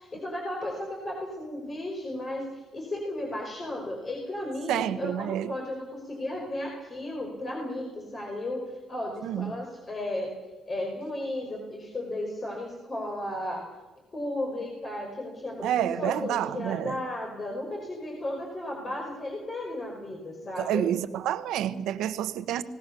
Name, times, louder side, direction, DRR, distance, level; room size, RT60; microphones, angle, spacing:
voice 1, 0.0-10.3 10.7-13.6 14.1-20.9, left 1 dB, 35° left, 5.2 m, -34 dB
voice 2, 4.7-5.6 9.2-9.5 15.6-17.0 20.6-22.6, right 11 dB, 85° right, 1.2 m, -29 dB
26.5 x 18.5 x 6.9 m
cardioid pair, 90°, 0 cm